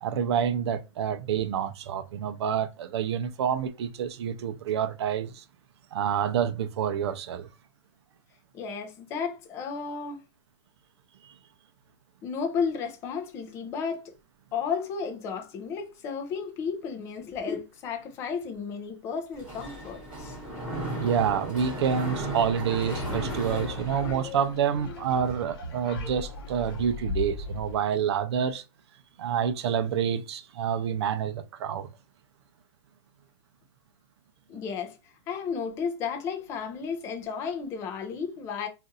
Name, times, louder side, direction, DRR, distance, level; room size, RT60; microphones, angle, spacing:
voice 1, 0.0-5.4 5.9-7.5 11.2-11.3 21.0-28.6 29.2-31.9, right 8 dB, 60° right, 0.5 m, -28 dB
voice 2, 8.5-10.2 12.2-14.1 14.5-20.4 34.5-35.0 35.3-38.7, left 6 dB, 15° left, 0.5 m, -33 dB
Mechanisms, 19.3-24.5, right 1 dB, 5° right, 1.3 m, -35 dB
sound 1, 22.7-27.8, left 3 dB, 50° left, 0.9 m, -37 dB
2.5 x 2.5 x 3.9 m
hypercardioid pair, 165°, 16 cm